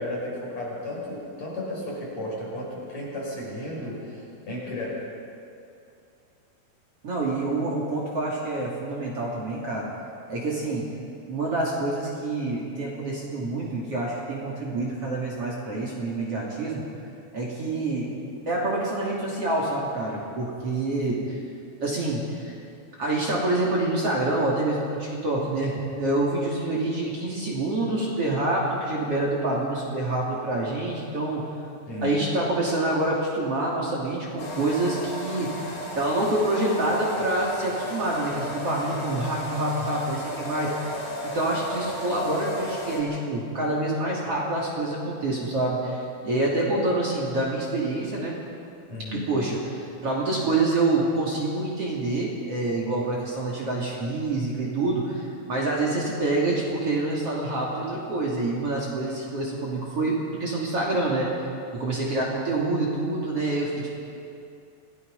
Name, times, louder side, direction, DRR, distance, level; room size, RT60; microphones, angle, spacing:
voice 1, 0.0-4.9 31.9-32.2 48.9-49.3, left 1 dB, 50° left, -5 dB, 6.9 m, -33 dB
voice 2, 7.0-9.9 10.3-10.9 11.3-16.8 17.3-18.1 18.5-21.3 21.8-22.6 23.0-31.4 32.0-35.5 36.0-40.9 41.2-48.3 49.1-61.3 61.7-64.0, right 2 dB, 40° right, -4 dB, 3.5 m, -27 dB
sound 1, 34.4-43.0, left 1 dB, 75° left, 8.5 m, -35 dB
27.0 x 18.0 x 5.5 m, 2.5 s
omnidirectional pair, 4.2 m